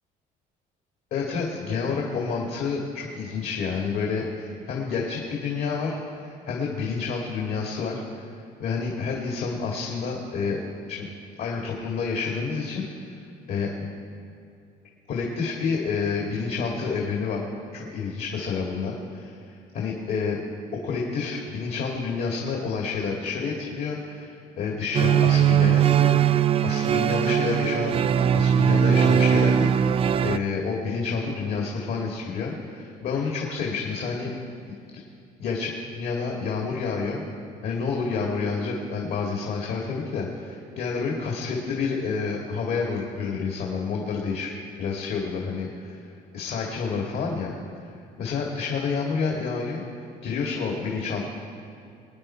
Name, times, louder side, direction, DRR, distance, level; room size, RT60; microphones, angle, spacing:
voice 1, 1.1-8.3 8.6-10.6 10.9-11.1 11.4-13.2 13.5-13.9 15.1-17.4 17.7-19.4 19.7-20.4 20.8-28.0 28.3-34.3 35.4-37.2 37.6-46.0 46.3-47.5 48.2-51.3, left 5 dB, 65° left, -1 dB, 2.0 m, -29 dB
sound 1, 24.9-30.4, right 8 dB, 35° right, 0.3 m, -20 dB
22.0 x 9.5 x 4.4 m, 2.5 s
cardioid pair, 110°, 17 cm